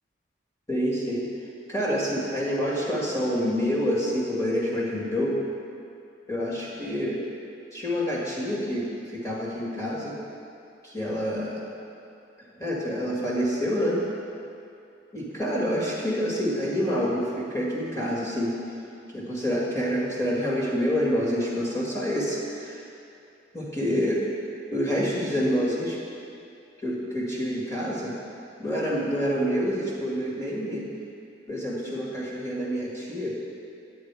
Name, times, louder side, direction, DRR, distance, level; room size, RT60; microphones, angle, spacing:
voice 1, 0.7-1.3 1.7-5.4 6.3-7.2 7.7-10.2 10.8-11.6 12.6-14.0 15.1-18.5 19.1-22.8 23.5-24.2 24.7-26.0 26.8-28.2 28.6-30.8 31.5-33.3, equal, 15° left, -5 dB, 2.0 m, -27 dB
9.8 x 9.5 x 4.8 m, 2.6 s
head